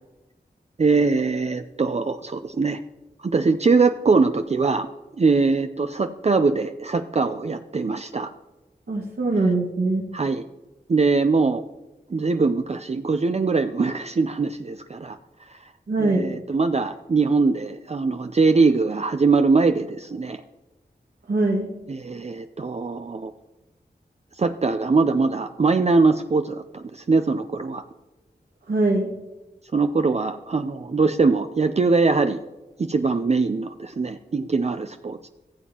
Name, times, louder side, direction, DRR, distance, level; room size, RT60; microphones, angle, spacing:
voice 1, 0.8-2.8 3.2-4.9 5.2-8.3 10.1-10.4 10.9-11.6 12.1-15.2 15.5-15.7 16.0-20.4 21.9-23.3 24.4-27.8 29.7-32.4 32.8-35.3, right 4 dB, 40° right, 8 dB, 0.5 m, -22 dB
voice 2, 8.9-10.1 15.9-16.3 21.3-21.8 28.7-29.1, right 2 dB, 75° right, -3 dB, 1.8 m, -22 dB
15.5 x 7.2 x 2.9 m, 1.1 s
cardioid pair, 50°, 17 cm